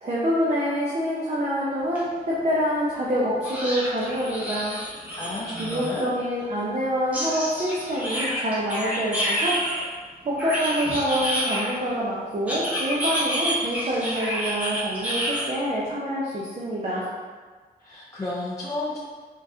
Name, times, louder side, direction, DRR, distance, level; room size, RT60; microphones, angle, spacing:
voice 1, 0.0-4.8 5.6-9.6 10.2-17.1, equal, 40° right, -6 dB, 0.6 m, -26 dB
sound 1, 1.9-2.0 2.4-2.5 3.4-6.0 7.1-9.8 10.4-11.9 12.5-15.4, equal, 10° right, 0.9 m, -29 dB
voice 2, 5.1-6.1 17.8-19.0, left 2 dB, 20° left, -8 dB, 0.5 m, -32 dB
3.7 x 3.4 x 2.7 m, 1.5 s
wide cardioid pair, 150°, 17 cm